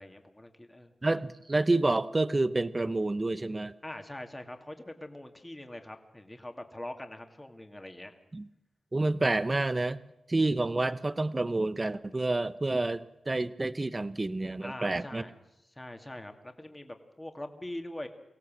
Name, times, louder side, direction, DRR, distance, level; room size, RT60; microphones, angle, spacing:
voice 1, 0.0-0.9 3.8-8.1 14.6-15.4 15.8-18.1, left 1 dB, 15° left, 5 dB, 2.3 m, -43 dB
voice 2, 1.0-3.7 8.3-8.4 8.9-10.0 10.3-15.2, right 2 dB, 25° right, 14 dB, 0.9 m, -28 dB
24.0 x 16.5 x 7.5 m, 0.86 s
cardioid pair, 80°, 0 cm